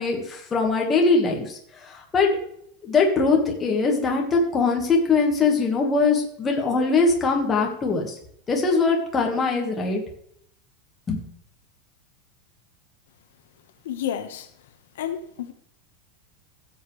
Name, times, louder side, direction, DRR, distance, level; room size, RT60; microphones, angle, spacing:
voice 1, 0.0-1.6 1.9-2.3 2.8-8.2 8.5-10.0 11.1-11.2, left 4 dB, 15° left, 0 dB, 1.6 m, -22 dB
voice 2, 13.8-14.5 14.9-15.5, left 10 dB, 85° left, 7 dB, 1.3 m, -30 dB
15.5 x 7.6 x 3.3 m, 0.68 s
supercardioid pair, 175°, 0 cm